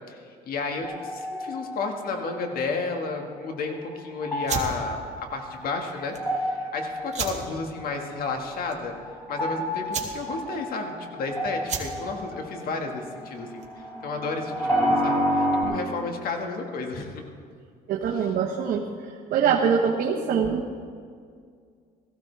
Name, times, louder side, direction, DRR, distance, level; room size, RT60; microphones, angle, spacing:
voice 1, 0.5-5.0 5.3-8.9 9.3-13.6 14.0-17.2 18.1-18.3, left 3 dB, 60° left, 3 dB, 1.8 m, -32 dB
sound 1, 0.8-2.8 3.8-15.6, equal, 10° left, 4.5 m, -30 dB
sound 2, 4.4-13.9, right 5 dB, 40° right, 1.9 m, -37 dB
voice 2, 17.9-18.8 19.3-20.8, right 6 dB, 60° right, -2 dB, 1.3 m, -23 dB
18.0 x 15.0 x 3.4 m, 2.1 s
cardioid pair, 110°, 17 cm